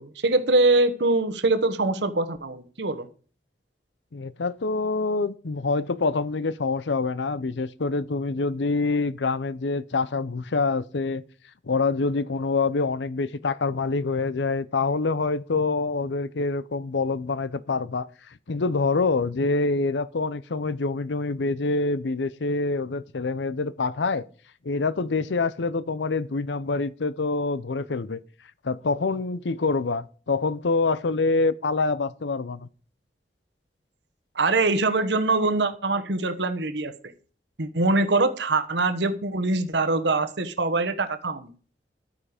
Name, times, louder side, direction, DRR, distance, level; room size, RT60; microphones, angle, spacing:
voice 1, 0.0-3.1 34.3-36.9 37.6-41.5, right 2 dB, 80° right, 1.2 m, -23 dB
voice 2, 4.1-11.2 11.7-18.1 18.5-24.3 24.6-28.2 28.6-32.7, left 3 dB, 85° left, 0.6 m, -26 dB
11.5 x 9.2 x 5.0 m
head